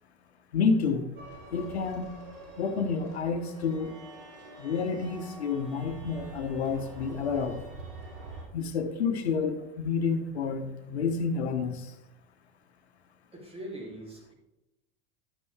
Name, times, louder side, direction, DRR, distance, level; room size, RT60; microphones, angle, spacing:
voice 1, 0.5-1.1 1.5-2.1 2.6-3.9 4.6-7.6 8.5-11.9, left 5 dB, 80° left, 7 dB, 1.1 m, -29 dB
sound 1, 1.2-8.4, right 3 dB, 65° right, 3.2 m, -45 dB
voice 2, 13.3-14.3, right 1 dB, 20° right, -1 dB, 3.1 m, -41 dB
11.0 x 6.9 x 3.5 m, 0.91 s
hypercardioid pair, 85°, 32 cm